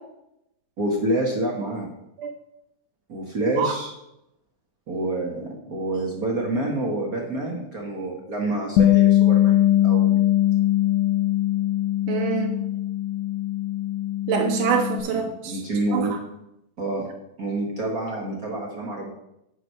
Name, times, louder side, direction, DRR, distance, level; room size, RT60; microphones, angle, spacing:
voice 1, 0.8-1.9 3.1-3.9 4.9-10.2 15.1-16.2 16.8-17.1 17.4-19.1, right 2 dB, 65° right, -2 dB, 0.9 m, -27 dB
Bass guitar, 8.8-15.0, left 13 dB, 85° left, 1.5 m, -21 dB
voice 2, 12.1-12.6 14.3-15.6 15.9-16.1, right 7 dB, 80° right, 2 dB, 2.2 m, -25 dB
10.0 x 4.7 x 5.5 m, 0.85 s
omnidirectional pair, 3.6 m